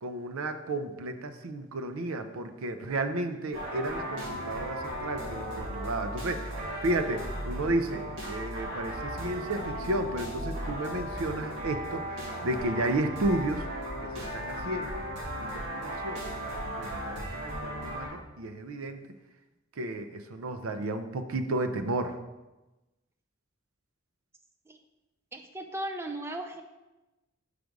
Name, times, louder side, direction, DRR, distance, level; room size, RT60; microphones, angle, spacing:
voice 1, 0.0-13.7 14.0-15.0 15.4-19.0 19.8-22.2, right 2 dB, 80° right, 8 dB, 0.5 m, -33 dB
sound 1, 3.5-18.1, equal, 55° right, 2.3 m, -36 dB
voice 2, 25.3-26.6, right 1 dB, 10° right, 5 dB, 0.4 m, -36 dB
5.0 x 4.7 x 5.2 m, 1.1 s
head